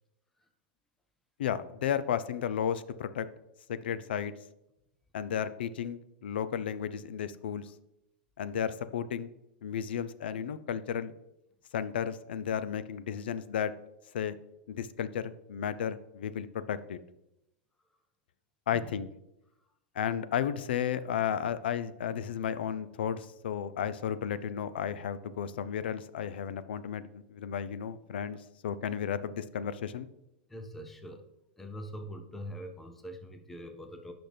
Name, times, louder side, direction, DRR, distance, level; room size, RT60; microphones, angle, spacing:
voice 1, 1.4-3.3 3.7-4.3 5.1-7.7 8.4-9.3 9.6-11.1 11.7-13.7 14.1-14.4 14.7-17.0 18.7-19.1 20.0-28.4 28.6-30.1, left 8 dB, 80° left, 14 dB, 0.5 m, -33 dB
voice 2, 30.5-31.2 31.6-34.1, equal, 5° left, 5 dB, 0.5 m, -43 dB
8.7 x 5.9 x 3.4 m, 0.87 s
supercardioid pair, 175°, 5 cm